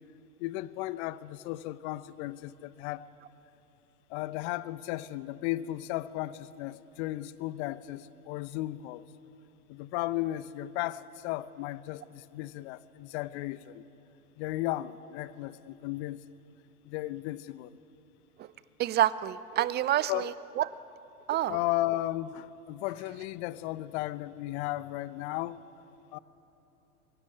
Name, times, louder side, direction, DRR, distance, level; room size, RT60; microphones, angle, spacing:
voice 1, 0.4-3.1 4.1-9.1 9.7-13.8 14.4-16.2 16.9-17.8 20.1-20.3 21.5-25.6 26.1-26.2, left 16 dB, 50° left, 0.9 m, -35 dB
voice 2, 18.8-20.3 20.6-20.7 21.3-21.6, right 13 dB, 25° right, 0.5 m, -27 dB
21.0 x 16.0 x 9.8 m
hypercardioid pair, 95°, 45 cm